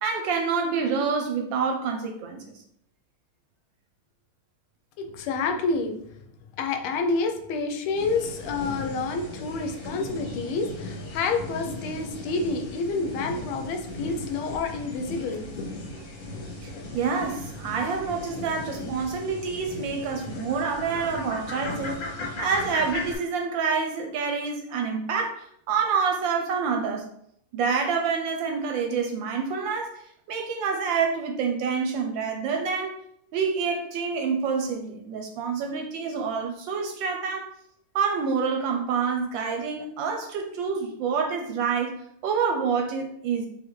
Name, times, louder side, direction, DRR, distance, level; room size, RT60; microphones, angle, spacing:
voice 1, 0.0-2.6 16.6-27.1 27.5-33.0 33.3-37.5 37.9-43.5, right 5 dB, 75° right, 3 dB, 1.2 m, -27 dB
voice 2, 5.0-6.0 6.6-15.5, left 4 dB, 85° left, 5 dB, 1.5 m, -28 dB
sound 1, 7.9-23.2, left 2 dB, 45° left, 1.1 m, -37 dB
3.9 x 3.4 x 3.0 m, 0.72 s
omnidirectional pair, 2.3 m